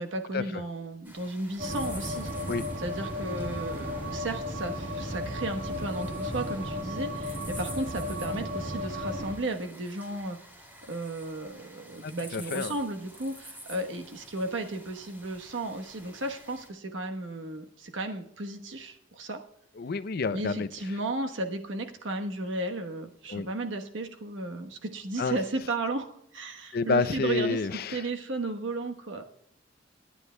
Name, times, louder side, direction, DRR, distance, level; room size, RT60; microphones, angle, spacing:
voice 1, 0.0-2.3 2.8-10.4 10.9-19.4 20.3-29.5, right 2 dB, 80° right, 1.2 m, -34 dB
sound 1, 1.0-16.7, equal, 10° right, 2.5 m, -49 dB
sound 2, 1.6-9.3, left 1 dB, 45° right, 1.6 m, -34 dB
voice 2, 12.0-12.7 19.8-20.7 23.3-23.5 25.2-25.4 26.7-28.0, left 4 dB, 55° left, 0.5 m, -29 dB
26.5 x 9.9 x 2.3 m
head